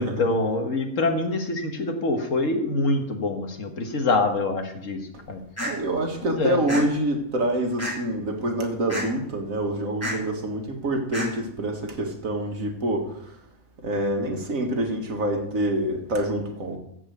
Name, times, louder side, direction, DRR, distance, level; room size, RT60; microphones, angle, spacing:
voice 1, 0.0-5.4 6.2-6.6, left 3 dB, 60° left, 5 dB, 1.7 m, -25 dB
sound 1, 5.6-5.7 6.7-6.8 7.8-8.1 8.9-9.0 10.0-10.2 11.1-11.3, equal, 10° left, 2.3 m, -29 dB
voice 2, 5.6-13.4 13.8-16.8, right 1 dB, 70° right, 3 dB, 2.1 m, -26 dB
14.0 x 4.8 x 8.0 m, 0.75 s
omnidirectional pair, 1.5 m